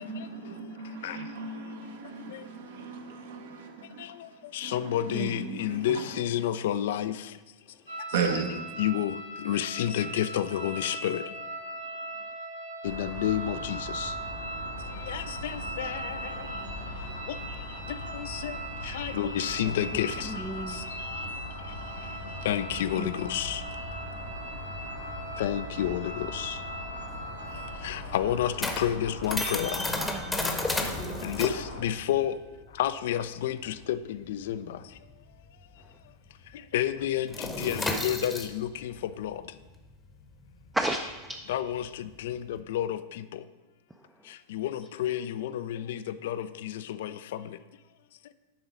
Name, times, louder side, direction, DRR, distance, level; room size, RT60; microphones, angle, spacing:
voice 1, 0.0-4.1 4.6-6.1 8.1-8.6, right 5 dB, 60° right, 4 dB, 1.0 m, -35 dB
voice 2, 0.8-1.4 2.0-2.5 3.8-7.4 8.0-8.4 8.8-11.4 12.8-14.2 14.9-16.5 17.3-23.8 25.4-26.6 27.4-29.8 30.3-32.4 32.7-35.0 36.5-39.6 41.5-43.4 44.2-47.6 48.2-48.3, left 11 dB, 55° left, 13 dB, 0.3 m, -31 dB
voice 3, 5.1-5.6 20.3-20.8 23.0-23.1 29.4-30.5 40.7-41.4, right 1 dB, 10° right, 4 dB, 0.4 m, -34 dB
sound 1, 7.9-27.8, right 1 dB, 90° right, 2.1 m, -40 dB
sound 2, 12.8-31.8, equal, 85° left, 1.4 m, -40 dB
sound 3, 27.1-36.1 36.3-36.6 36.9-42.6, left 2 dB, 10° left, 0.9 m, -34 dB
10.5 x 3.9 x 4.9 m, 1.2 s
figure-of-eight pair, 90°, 0 cm